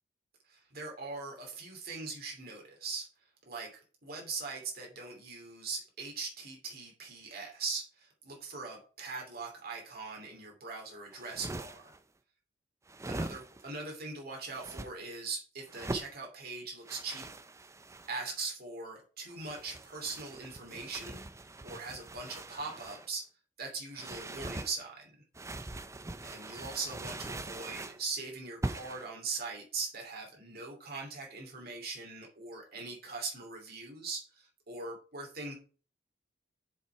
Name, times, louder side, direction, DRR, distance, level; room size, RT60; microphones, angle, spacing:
voice 1, 0.5-3.1 3.5-3.7 4.0-11.9 13.1-17.3 18.1-23.2 23.6-25.1 26.2-35.5, right 4 dB, 55° right, 0 dB, 2.9 m, -41 dB
sound 1, 11.1-12.0 12.9-13.8 14.5-14.9 15.7-16.1 16.9-18.3 19.3-23.1 24.0-24.7 25.3-28.0 28.6-29.1, right 2 dB, 15° right, 0.6 m, -42 dB
7.2 x 6.1 x 4.6 m, 0.37 s
head